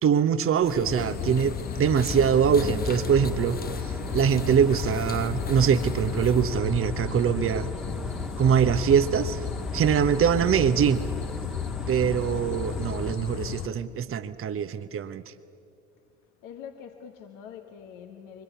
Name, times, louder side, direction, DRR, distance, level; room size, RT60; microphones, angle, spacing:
voice 1, 0.0-3.6 4.1-7.7 8.4-9.5 9.7-11.0 11.9-15.3, right 7 dB, 40° right, 11 dB, 1.1 m, -23 dB
sound 1, 0.6-6.6, left 6 dB, 25° left, 0.9 m, -38 dB
sound 2, 0.9-13.7, left 10 dB, 50° left, 1.1 m, -34 dB
sound 3, 2.1-13.2, equal, ahead, 1.5 m, -36 dB
voice 2, 16.4-18.4, left 8 dB, 65° left, 5 dB, 1.5 m, -44 dB
24.5 x 21.0 x 8.2 m, 2.7 s
hypercardioid pair, 55°, 34 cm